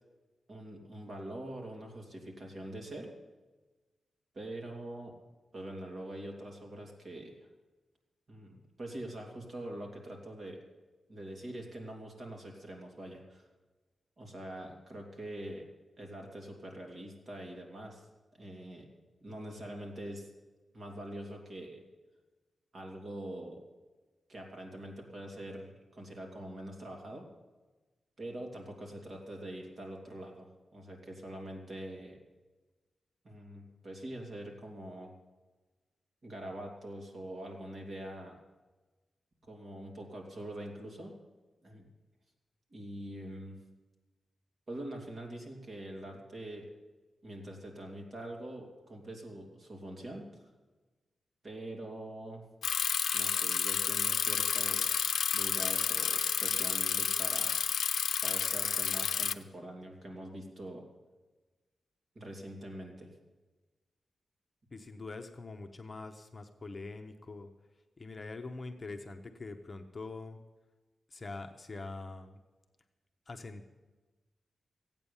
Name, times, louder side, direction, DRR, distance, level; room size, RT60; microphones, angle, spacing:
voice 1, 0.5-3.1 4.3-5.1 5.5-7.4 8.3-10.6 11.1-13.5 14.2-15.7 16.0-18.1 18.4-18.9 19.2-20.3 20.7-21.8 22.7-23.6 24.3-27.3 28.2-32.2 33.2-35.1 36.2-38.4 39.5-41.2 41.6-41.9 42.7-43.6 44.7-46.7 47.2-50.4 51.4-52.4 53.1-55.0 55.3-57.6 58.2-60.8 62.1-63.1, right 1 dB, 40° right, 1 dB, 3.1 m, -44 dB
Bicycle, 52.6-59.3, left 7 dB, 85° left, 0.5 m, -30 dB
voice 2, 64.7-67.5 68.0-70.4 71.1-72.4 73.3-73.7, left 3 dB, 30° left, 5 dB, 0.9 m, -44 dB
15.5 x 9.0 x 7.1 m, 1.2 s
wide cardioid pair, 145°, 0 cm